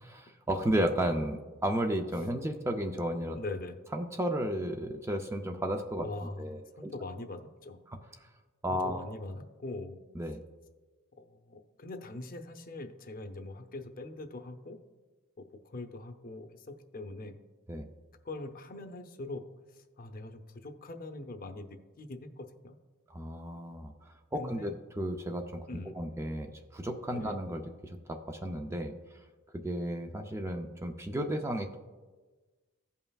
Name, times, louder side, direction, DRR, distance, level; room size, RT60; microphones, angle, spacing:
voice 1, 0.0-3.4 3.9-6.1 6.4-6.9 7.9-8.0 8.6-9.1 10.2-10.4 17.7-17.9 23.1-23.9 24.3-28.9 29.5-31.8, equal, 10° right, 5 dB, 0.4 m, -33 dB
voice 2, 3.3-3.8 6.0-7.8 8.7-10.0 11.2-14.8 15.4-17.4 18.2-19.4 19.7-22.8 24.4-24.7 25.7-26.0 27.1-27.4, left 2 dB, 40° left, 7 dB, 0.6 m, -42 dB
16.0 x 5.5 x 2.3 m, 1.3 s
head